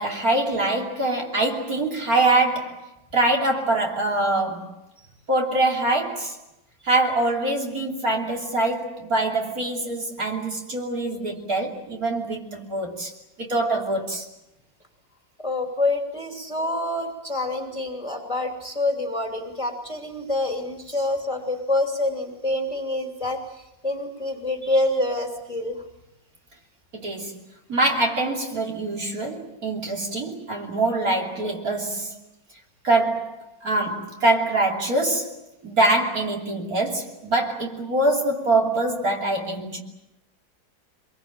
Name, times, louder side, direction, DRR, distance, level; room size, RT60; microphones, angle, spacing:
voice 1, 0.0-4.7 5.3-6.4 6.8-13.1 13.4-14.3 26.9-27.4 27.7-32.2 32.8-35.4 35.6-39.8, right 2 dB, 45° right, 3.5 m, -24 dB
voice 2, 15.4-25.8, left 1 dB, 15° left, 3.0 m, -27 dB
25.0 x 22.5 x 8.9 m
omnidirectional pair, 2.1 m